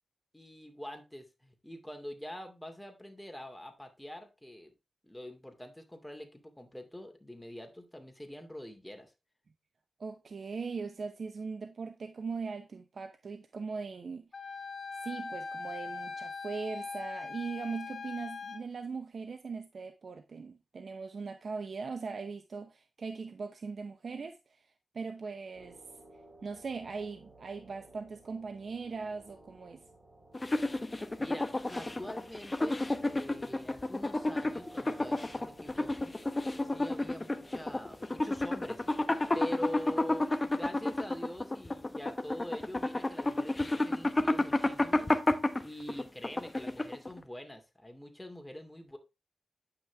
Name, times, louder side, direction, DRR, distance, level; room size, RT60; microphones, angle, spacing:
voice 1, 0.3-4.7 5.0-9.1 30.7-39.1 39.3-49.0, left 1 dB, 10° left, 2.5 m, -45 dB
voice 2, 10.0-14.3 15.0-24.4 24.9-25.8 26.4-29.8, right 4 dB, 60° right, 0.9 m, -40 dB
Wind instrument woodwind instrument, 14.3-18.6, left 4 dB, 50° left, 1.5 m, -41 dB
sound 1, 25.5-39.4, right 1 dB, 30° right, 5.8 m, -57 dB
sound 2, 30.3-47.2, left 2 dB, 25° left, 1.0 m, -31 dB
9.4 x 6.0 x 3.4 m
cardioid pair, 55°, 0 cm